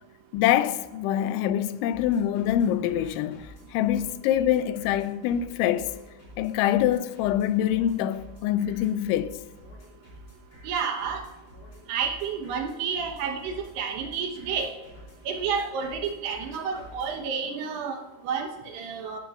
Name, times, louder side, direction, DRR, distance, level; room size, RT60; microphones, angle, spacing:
voice 1, 0.3-6.0 6.4-9.4, left 11 dB, 85° left, 3.0 m, -25 dB
sound 1, 1.9-17.2, equal, 25° left, 4.5 m, -49 dB
voice 2, 10.6-11.2 11.9-14.7 15.3-19.2, right 6 dB, 70° right, 2.9 m, -30 dB
16.5 x 12.0 x 2.4 m
omnidirectional pair, 5.3 m